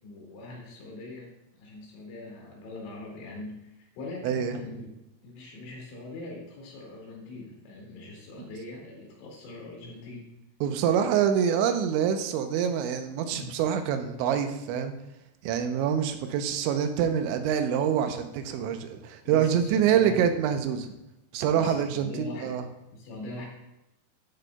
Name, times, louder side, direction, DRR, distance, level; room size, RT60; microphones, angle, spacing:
voice 1, 0.0-1.3 1.6-4.9 5.2-10.3 13.4-13.6 19.2-20.3 21.5-22.5 22.9-23.5, left 2 dB, 85° left, -2 dB, 4.7 m, -42 dB
voice 2, 4.2-4.6 10.6-14.9 15.4-20.9 21.3-22.6, right 8 dB, 90° right, 7 dB, 3.1 m, -26 dB
12.5 x 9.1 x 2.3 m, 0.92 s
omnidirectional pair, 5.2 m